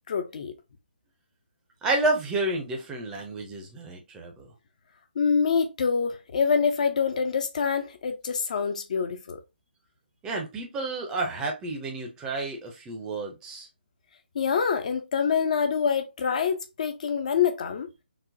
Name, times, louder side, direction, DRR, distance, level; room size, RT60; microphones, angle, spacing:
voice 1, 0.1-0.5 5.2-9.4 14.4-17.9, left 6 dB, 40° left, 0.4 m, -26 dB
voice 2, 1.8-4.5 10.2-13.7, right 2 dB, 10° right, 0.5 m, -30 dB
3.9 x 2.0 x 2.5 m
figure-of-eight pair, 145°, 6 cm